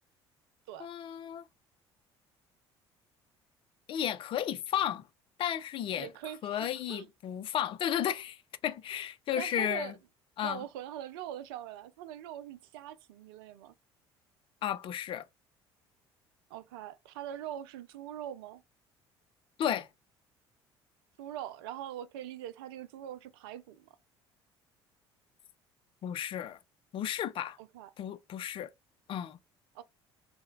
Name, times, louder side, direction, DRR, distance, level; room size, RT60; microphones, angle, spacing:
voice 1, 0.8-1.5 3.9-5.1 5.4-6.1 6.4-9.9 10.4-10.6 14.6-15.3 19.6-19.9 26.0-26.6 26.9-27.6 28.0-28.7 29.1-29.4, left 10 dB, 40° left, 0.4 m, -33 dB
voice 2, 6.0-7.1 9.4-9.9 10.4-13.7 16.5-18.6 21.2-23.9 27.6-27.9 29.7-29.8, right 11 dB, 65° right, 0.4 m, -42 dB
3.4 x 2.1 x 3.6 m
figure-of-eight pair, 55°, 14 cm